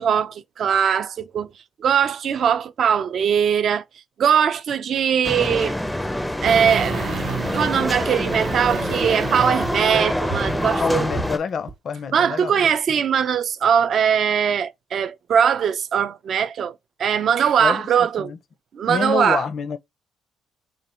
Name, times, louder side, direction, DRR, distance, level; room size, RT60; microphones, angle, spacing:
voice 1, 0.0-1.5 1.8-3.8 4.2-5.8 6.4-7.2 7.5-11.1 12.1-16.7 17.0-18.3 18.7-19.4, right 8 dB, 60° right, 0.4 m, -20 dB
sound 1, 5.2-11.4, left 1 dB, 5° left, 0.4 m, -26 dB
sound 2, 6.5-11.4 11.7-11.8, right 6 dB, 80° right, 0.8 m, -32 dB
voice 2, 10.8-12.6 17.6-17.9 18.2-18.4 18.9-19.8, left 6 dB, 55° left, 0.5 m, -27 dB
3.8 x 2.0 x 4.3 m
cardioid pair, 90°, 0 cm